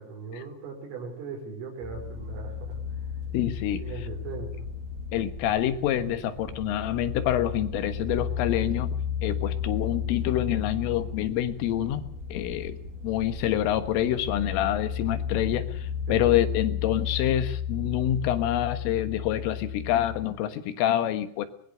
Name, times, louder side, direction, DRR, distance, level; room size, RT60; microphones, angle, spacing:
voice 1, 0.0-3.0 3.7-4.7 16.1-16.3, right 4 dB, 85° right, 1 dB, 7.5 m, -39 dB
sound 1, 1.8-20.3, left 8 dB, 50° left, 5.7 m, -34 dB
sound 2, 1.9-16.7, right 4 dB, 50° right, 2.3 m, -44 dB
voice 2, 3.3-3.8 5.1-9.0 9.2-12.0 12.3-12.8 13.0-21.5, left 11 dB, 80° left, 11 dB, 4.0 m, -27 dB
22.5 x 20.0 x 6.6 m, 0.63 s
omnidirectional pair, 5.7 m